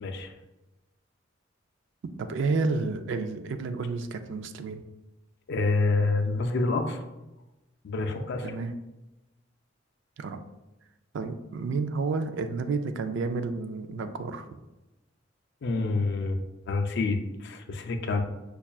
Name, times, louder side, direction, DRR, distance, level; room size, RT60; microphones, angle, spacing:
voice 1, 0.0-0.3 5.5-7.0 7.8-8.5 15.6-16.4 16.7-17.2 17.4-18.2, left 3 dB, 60° left, 6 dB, 0.4 m, -27 dB
voice 2, 2.2-4.8 8.4-8.7 10.2-10.4 11.1-14.5, right 4 dB, 65° right, 9 dB, 0.3 m, -30 dB
5.5 x 2.3 x 2.3 m, 1.0 s
head